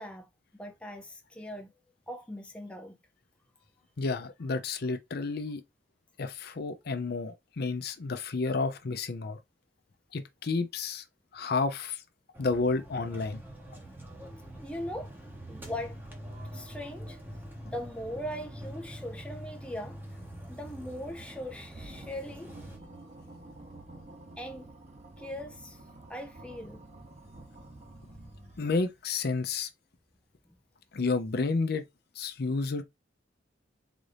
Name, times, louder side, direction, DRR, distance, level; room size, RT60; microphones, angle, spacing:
voice 1, 0.0-1.7 2.1-2.9 14.3-15.1 15.5-16.0 16.5-17.2 17.6-20.0 20.5-22.5 24.4-24.8 25.2-25.8 26.1-26.8, left 1 dB, 5° left, 0.4 m, -40 dB
voice 2, 4.0-5.6 6.2-9.4 10.1-11.0 11.3-12.0 12.4-13.4 28.6-29.7 30.9-31.8 32.2-32.8, left 3 dB, 55° left, 0.5 m, -31 dB
sound 1, 12.3-22.8, right 1 dB, 10° right, 0.9 m, -45 dB
sound 2, 21.7-29.0, right 2 dB, 35° right, 1.0 m, -49 dB
3.9 x 2.6 x 3.3 m
head